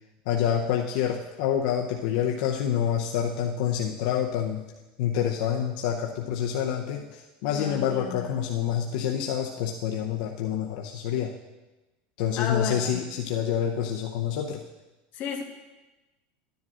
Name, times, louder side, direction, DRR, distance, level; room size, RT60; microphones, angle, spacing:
voice 1, 0.3-4.6 5.0-11.3 12.2-14.6, left 9 dB, 75° left, 0 dB, 0.7 m, -27 dB
voice 2, 7.5-8.3 12.4-13.1 15.1-15.4, left 7 dB, 45° left, -1 dB, 1.6 m, -32 dB
13.5 x 10.5 x 2.5 m, 1.1 s
supercardioid pair, 135°, 5 cm